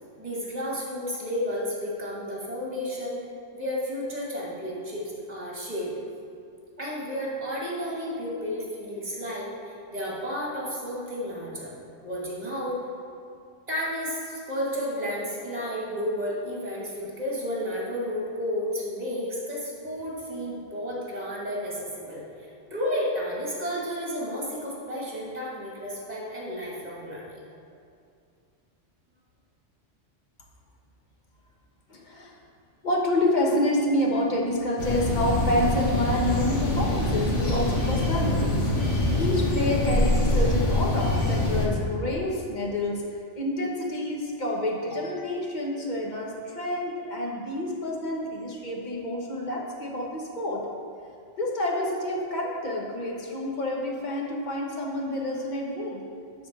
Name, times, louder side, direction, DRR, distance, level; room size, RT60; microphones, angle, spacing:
voice 1, 0.2-3.2 3.5-5.9 6.8-11.7 12.0-12.9 13.7-27.4, equal, 35° right, -5 dB, 2.3 m, -32 dB
voice 2, 31.9-32.4 32.8-38.7 39.1-43.0 43.3-50.6 51.4-56.0, left 1 dB, 40° left, -1 dB, 1.3 m, -28 dB
sound 1, 34.8-41.7, left 1 dB, 75° left, 1.6 m, -24 dB
11.5 x 4.3 x 6.1 m, 2.4 s
omnidirectional pair, 1.2 m